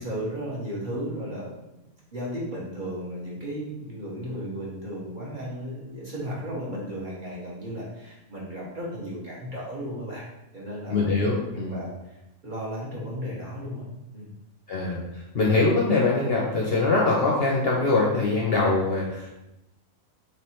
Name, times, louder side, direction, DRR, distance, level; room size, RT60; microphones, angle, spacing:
voice 1, 0.0-1.5 2.1-10.3 10.5-11.1 11.7-12.2 12.4-13.9 14.1-14.3, equal, 35° right, -6 dB, 1.1 m, -34 dB
voice 2, 10.9-11.8 14.7-19.3, left 3 dB, 55° left, -3 dB, 0.8 m, -23 dB
3.2 x 3.2 x 4.3 m, 0.92 s
omnidirectional pair, 1.5 m